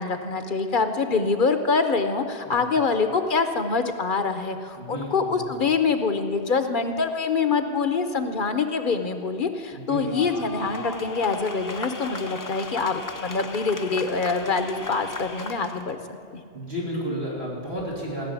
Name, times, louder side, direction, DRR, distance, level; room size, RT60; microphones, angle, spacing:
voice 1, 0.0-16.0 16.3-16.4, left 4 dB, 55° left, 8 dB, 1.0 m, -25 dB
voice 2, 4.8-5.5 9.7-10.4 16.5-18.3, equal, 85° right, -5 dB, 3.8 m, -32 dB
sound 1, 10.0-15.9, left 3 dB, 25° left, 0.5 m, -37 dB
16.5 x 6.6 x 9.6 m, 2.2 s
omnidirectional pair, 1.1 m